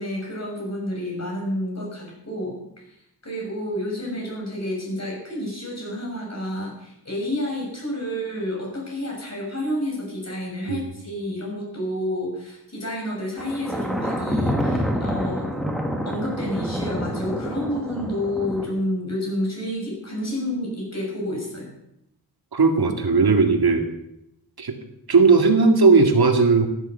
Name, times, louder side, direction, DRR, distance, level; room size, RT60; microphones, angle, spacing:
voice 1, 0.0-2.5 3.2-15.5 16.0-21.7, left 1 dB, 45° left, -2 dB, 7.1 m, -29 dB
Thunder, 13.4-18.7, equal, ahead, 2.0 m, -27 dB
voice 2, 22.5-23.9 24.6-24.8 25.1-26.7, right 4 dB, 75° right, 4 dB, 2.2 m, -17 dB
14.5 x 10.5 x 6.9 m, 0.81 s
wide cardioid pair, 95°, 37 cm